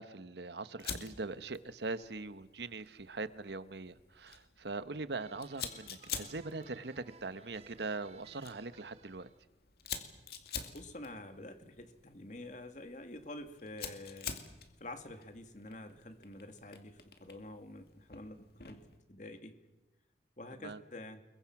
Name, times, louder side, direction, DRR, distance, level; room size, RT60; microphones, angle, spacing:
voice 1, 0.0-9.3 20.5-20.8, right 3 dB, 75° right, 13 dB, 1.1 m, -41 dB
Fire, 0.8-19.0, left 7 dB, 60° left, 2.5 m, -48 dB
sound 1, 5.1-9.4, right 4 dB, 35° right, 1.8 m, -59 dB
voice 2, 10.7-14.3 14.8-18.8 19.1-19.6 20.4-21.2, left 1 dB, 45° left, 7 dB, 2.2 m, -48 dB
29.0 x 22.5 x 6.0 m, 1.1 s
head